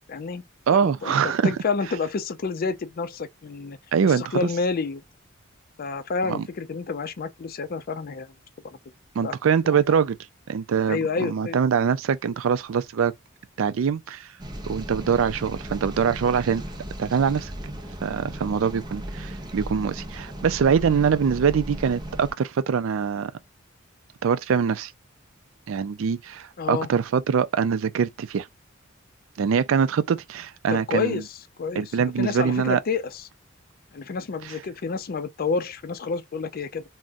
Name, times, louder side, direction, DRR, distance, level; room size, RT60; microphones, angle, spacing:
voice 1, 0.1-0.4 0.7-3.8 4.0-5.0 5.8-8.3 8.6-8.8 9.2-9.4 9.6-9.8 10.9-11.6 26.6-26.9 30.7-31.3 31.6-31.9 32.2-33.2 33.9-36.8, left 4 dB, 45° left, 0.4 m, -29 dB
voice 2, 0.7-1.5 3.9-4.5 6.2-6.5 9.2-10.2 10.5-13.1 13.6-14.3 14.7-16.6 17.0-17.7 18.0-23.3 24.2-24.9 25.7-28.5 29.4-31.2 31.8-32.8 34.4-34.5, right 7 dB, 70° right, 0.4 m, -23 dB
sound 1, 14.4-22.3, right 1 dB, 20° right, 0.6 m, -36 dB
3.6 x 2.1 x 2.6 m
head